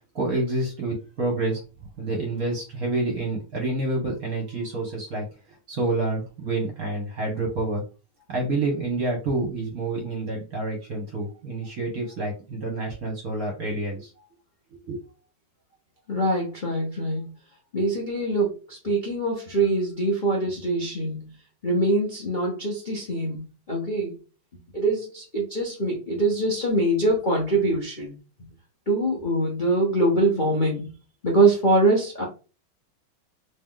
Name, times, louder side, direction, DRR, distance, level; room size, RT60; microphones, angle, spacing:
voice 1, 0.1-1.6 2.0-5.2 5.7-7.8 8.3-14.1 14.8-15.0, right 2 dB, 50° right, 0 dB, 1.2 m, -28 dB
voice 2, 16.1-17.3 17.7-21.3 21.6-24.2 24.7-28.2 28.9-30.9 31.2-32.2, right 2 dB, 80° left, -2 dB, 0.4 m, -23 dB
3.2 x 3.0 x 3.7 m, 0.33 s
omnidirectional pair, 2.3 m